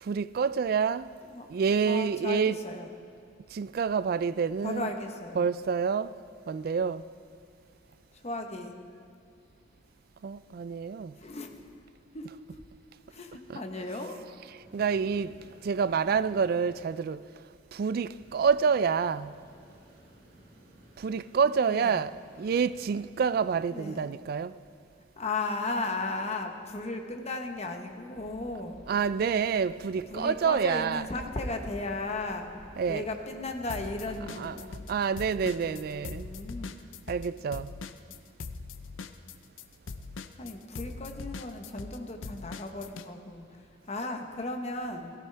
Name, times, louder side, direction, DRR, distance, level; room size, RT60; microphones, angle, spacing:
voice 1, 0.0-1.1 1.5-2.6 3.5-4.9 5.4-6.1 6.5-7.0 10.2-11.2 13.5-13.6 14.7-17.2 17.7-19.3 21.0-24.6 28.9-31.0 32.8-33.0 34.3-36.3 37.1-37.7, right 6 dB, 50° right, 0.3 m, -28 dB
voice 2, 1.8-2.9 4.6-5.5 8.1-8.7 11.1-11.6 12.1-12.3 13.1-14.2 21.7-22.0 23.7-24.1 25.2-28.8 30.1-32.5 32.9-34.7 35.4-36.7 40.4-45.1, left 2 dB, 35° left, 1.0 m, -36 dB
sound 1, 14.6-16.8 18.2-23.7, equal, 70° right, 4.3 m, -56 dB
sound 2, 28.1-36.4, equal, 5° left, 2.7 m, -54 dB
sound 3, 33.7-34.9 35.2-43.1, left 4 dB, 90° left, 0.6 m, -41 dB
17.5 x 14.0 x 3.4 m
head